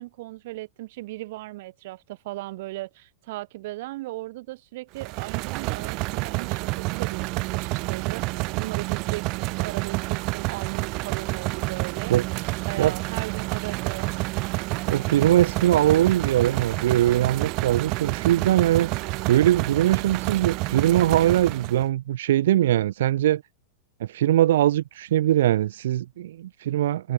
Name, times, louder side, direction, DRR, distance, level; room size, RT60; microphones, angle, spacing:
voice 1, 0.0-12.2 12.6-14.2, right 18 dB, 50° right, 2.2 m, -37 dB
sound 1, 5.0-21.9, right 26 dB, 35° right, 1.4 m, -29 dB
voice 2, 14.9-18.9 19.3-23.4 24.0-27.1, right 13 dB, 70° right, 1.4 m, -21 dB
supercardioid pair, 170°, 0 cm